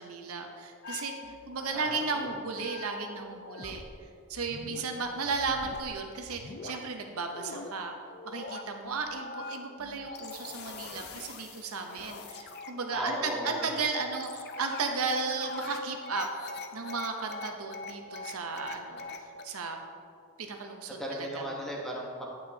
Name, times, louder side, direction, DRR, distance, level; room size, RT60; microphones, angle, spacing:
voice 1, 0.0-3.8 4.3-7.9 8.2-16.3 16.7-19.8 20.4-21.5, right 4 dB, 80° right, 3 dB, 0.8 m, -34 dB
sound 1, 0.8-3.9 4.3-6.8 7.2-19.4, left 3 dB, 50° left, 0.5 m, -44 dB
voice 2, 1.7-2.3 12.9-13.7 21.0-22.2, equal, ahead, -3 dB, 1.1 m, -37 dB
9.6 x 8.1 x 2.8 m, 2.4 s
head